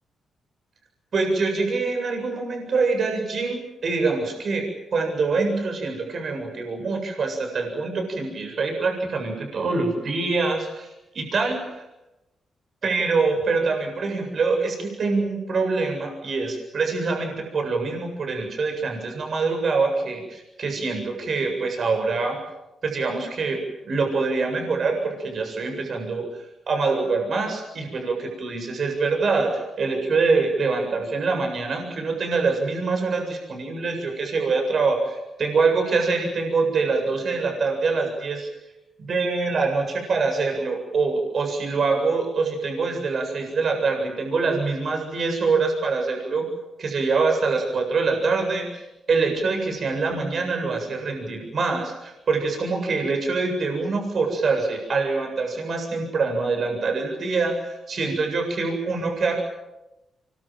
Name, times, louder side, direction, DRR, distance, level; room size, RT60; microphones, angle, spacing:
voice 1, 1.1-4.6 4.9-10.9 11.1-11.9 12.8-22.4 22.8-23.6 23.8-26.2 26.7-38.5 39.0-46.5 46.8-59.4, right 4 dB, 60° right, 3 dB, 7.8 m, -24 dB
25.5 x 24.0 x 7.7 m, 0.97 s
cardioid pair, 65°, 0 cm